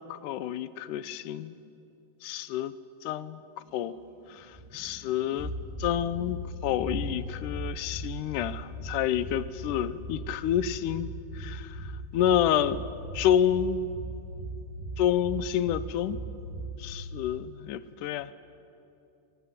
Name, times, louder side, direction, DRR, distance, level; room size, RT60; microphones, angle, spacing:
voice 1, 0.1-1.5 2.2-2.7 3.0-3.4 3.7-3.9 4.4-4.5 4.7-5.5 5.8-11.8 12.1-12.8 13.1-13.9 15.0-16.2 16.8-18.3, left 10 dB, 90° left, 15 dB, 2.4 m, -28 dB
sound 1, 4.3-17.0, right 1 dB, 10° right, 1.6 m, -39 dB
25.5 x 22.0 x 10.0 m, 2.7 s
omnidirectional pair, 3.6 m